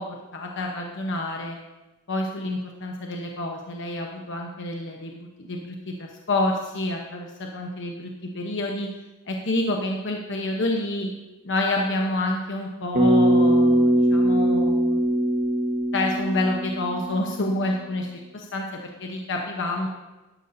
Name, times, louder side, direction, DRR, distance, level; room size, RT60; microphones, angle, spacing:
voice 1, 0.0-1.6 2.1-8.9 9.3-11.1 11.4-15.3 15.9-19.9, left 2 dB, 60° left, 0 dB, 1.1 m, -28 dB
Bass guitar, 12.9-17.3, right 1 dB, 45° right, 1.4 m, -21 dB
12.0 x 12.0 x 2.8 m, 1.1 s
head